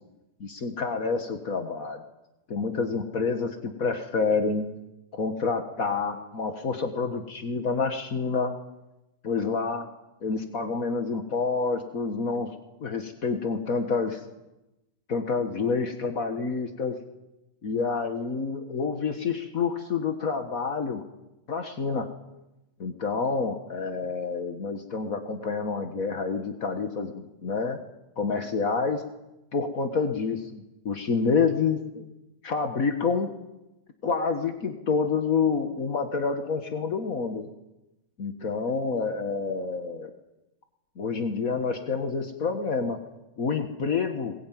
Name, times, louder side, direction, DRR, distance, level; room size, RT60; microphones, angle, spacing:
voice 1, 0.4-2.0 2.5-4.7 5.2-8.5 9.2-9.9 10.2-14.2 15.1-17.0 17.6-21.0 21.5-22.1 22.8-27.8 28.2-29.0 29.5-32.0 32.4-33.3 34.0-37.5 38.2-40.1 41.0-43.0 43.4-44.3, left 4 dB, 65° left, 6 dB, 0.8 m, -28 dB
21.0 x 21.0 x 9.3 m, 0.96 s
omnidirectional pair, 4.0 m